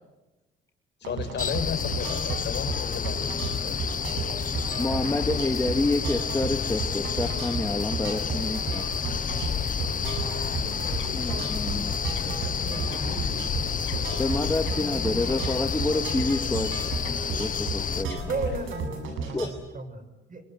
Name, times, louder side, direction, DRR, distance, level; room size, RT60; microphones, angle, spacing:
voice 1, 1.0-3.3 3.6-3.8, left 7 dB, 60° left, 6 dB, 5.6 m, -33 dB
sound 1, 1.0-19.5, right 5 dB, 90° right, 7.6 m, -34 dB
sound 2, 1.4-18.0, left 7 dB, 40° left, 1.1 m, -30 dB
voice 2, 4.8-8.9 11.1-11.9 14.2-16.9 17.4-18.3 19.3-19.6, left 2 dB, 15° left, 4 dB, 2.4 m, -28 dB
sound 3, 9.1-18.9, left 9 dB, 75° left, 2.2 m, -39 dB
voice 3, 10.6-15.5 17.9-20.4, right 2 dB, 40° right, 8 dB, 7.1 m, -38 dB
26.0 x 26.0 x 8.1 m, 1.1 s
cardioid pair, 90°, 20 cm